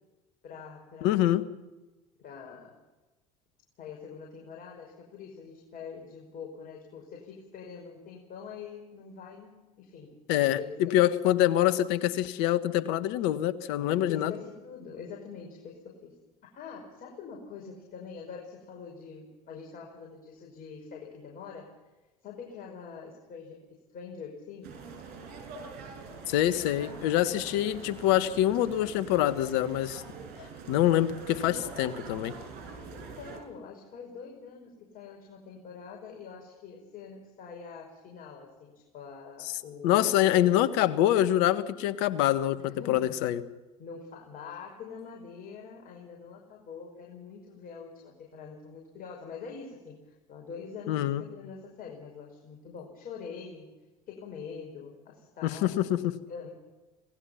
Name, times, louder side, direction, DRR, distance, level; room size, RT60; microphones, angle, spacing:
voice 1, 0.4-1.3 2.2-2.7 3.8-10.2 10.6-11.0 13.8-16.1 16.4-21.7 22.2-24.8 32.7-40.7 42.6-43.2 43.8-53.7 54.1-55.9 56.3-56.5, left 6 dB, 50° left, 0 dB, 5.6 m, -45 dB
voice 2, 1.0-1.4 10.3-14.3 26.3-30.0 30.7-32.3 39.8-43.4 50.9-51.2 55.4-56.1, left 13 dB, 65° left, 12 dB, 1.5 m, -25 dB
sound 1, 24.6-33.4, right 4 dB, 65° right, 7.0 m, -44 dB
26.5 x 18.5 x 5.8 m, 1.1 s
hypercardioid pair, 70°, 19 cm